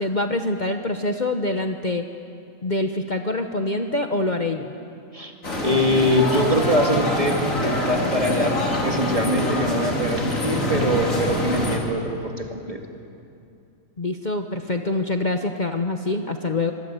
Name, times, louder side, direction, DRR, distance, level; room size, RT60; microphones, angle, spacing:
voice 1, 0.0-2.0 2.6-4.7 14.0-16.7, left 2 dB, 35° left, 5 dB, 1.1 m, -25 dB
sound 1, 5.4-11.8, left 1 dB, 75° left, 3.8 m, -25 dB
voice 2, 5.6-12.8, equal, 25° right, 3 dB, 2.4 m, -23 dB
26.5 x 22.0 x 9.2 m, 2.6 s
omnidirectional pair, 1.4 m